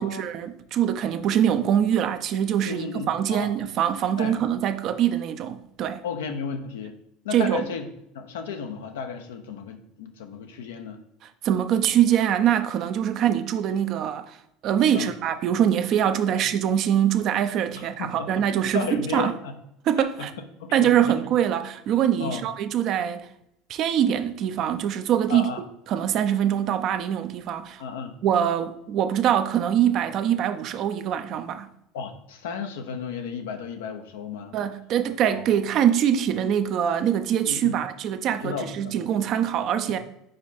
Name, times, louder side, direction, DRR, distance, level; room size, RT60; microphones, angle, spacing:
voice 1, 0.0-6.0 7.3-7.7 11.4-14.4 14.6-19.3 19.9-20.3 20.7-23.3 23.7-25.5 25.9-27.8 28.2-31.7 34.5-40.0, right 9 dB, 55° right, 0.6 m, -23 dB
voice 2, 2.6-3.5 4.2-4.4 6.0-7.0 7.2-7.9 8.1-11.0 14.9-15.1 16.3-16.5 17.7-19.5 20.0-20.3 20.6-21.2 22.2-22.4 25.3-25.6 27.8-28.1 31.9-34.6 35.2-35.4 37.4-37.8 38.4-38.9, left 5 dB, 85° left, 0.8 m, -34 dB
5.2 x 4.5 x 4.1 m
hypercardioid pair, 90°, 0 cm